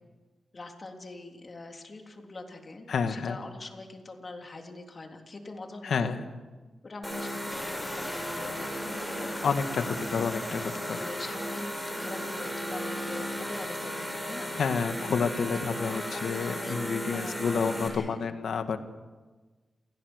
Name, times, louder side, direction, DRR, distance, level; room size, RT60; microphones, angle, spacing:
voice 1, 0.5-6.3 6.8-8.7 9.0-10.0 10.9-14.5 15.2-15.7 16.1-17.5 17.9-18.3, left 2 dB, 35° left, 3 dB, 3.5 m, -43 dB
voice 2, 2.9-3.4 5.8-6.2 9.4-9.9 10.1-11.0 14.6-18.8, left 6 dB, 80° left, 8 dB, 1.8 m, -29 dB
sound 1, 7.0-17.9, equal, 5° right, 6.7 m, -35 dB
sound 2, 7.5-13.7, left 2 dB, 20° left, 1.6 m, -45 dB
28.5 x 17.0 x 8.1 m, 1.3 s
wide cardioid pair, 95°, 0 cm